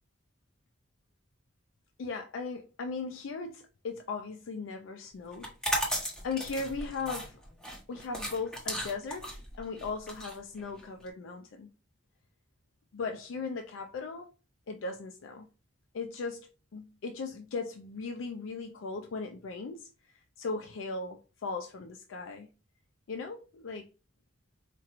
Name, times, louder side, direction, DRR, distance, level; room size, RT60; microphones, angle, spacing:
voice 1, 2.0-7.4 7.9-11.7 12.9-14.3 14.7-15.5 15.9-19.9 20.4-22.5 23.1-23.8, left 4 dB, 80° left, 0.4 m, -38 dB
sound 1, 5.3-11.1, equal, 5° left, 0.9 m, -35 dB
4.3 x 2.4 x 2.9 m
head